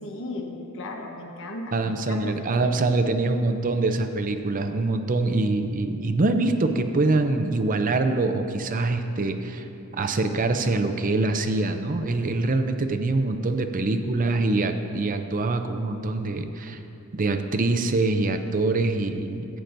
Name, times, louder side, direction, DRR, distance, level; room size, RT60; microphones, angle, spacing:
voice 1, 0.0-2.7, left 2 dB, 60° left, 2 dB, 1.1 m, -36 dB
voice 2, 1.7-9.6 9.9-16.8 17.1-19.5, right 2 dB, 35° right, 7 dB, 0.5 m, -24 dB
15.5 x 8.8 x 2.6 m, 2.7 s
head